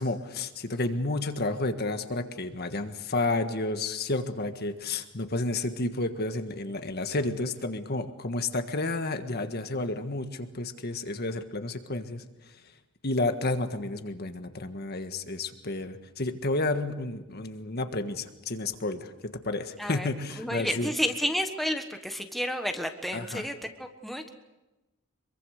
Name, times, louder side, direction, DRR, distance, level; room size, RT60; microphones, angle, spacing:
voice 1, 0.0-12.2 13.0-20.9 23.1-23.5, left 2 dB, 50° left, 8 dB, 1.6 m, -31 dB
voice 2, 20.4-24.3, equal, ahead, 5 dB, 1.4 m, -31 dB
25.0 x 23.5 x 6.6 m, 1.0 s
head